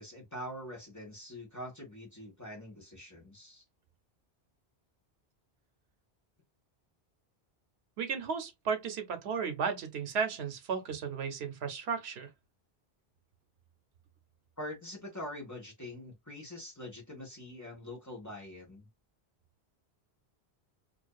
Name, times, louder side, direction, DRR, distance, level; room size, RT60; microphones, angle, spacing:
voice 1, 0.0-3.6 14.6-18.9, left 1 dB, 20° left, 0.9 m, -44 dB
voice 2, 8.0-12.3, right 6 dB, 80° right, 0.9 m, -34 dB
2.5 x 2.2 x 2.2 m
omnidirectional pair, 1.1 m